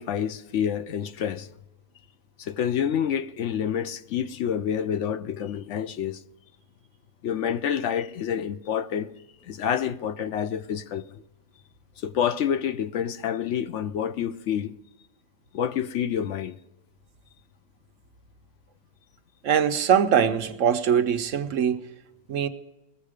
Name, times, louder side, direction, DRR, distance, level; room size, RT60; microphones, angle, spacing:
voice 1, 0.0-1.5 2.4-6.2 7.2-9.1 9.4-11.2 12.0-14.7 15.5-16.6, left 8 dB, 70° left, 0.9 m, -28 dB
voice 2, 19.4-21.8 22.3-22.5, right 8 dB, 70° right, 1.1 m, -22 dB
21.0 x 7.6 x 4.9 m
omnidirectional pair, 1.4 m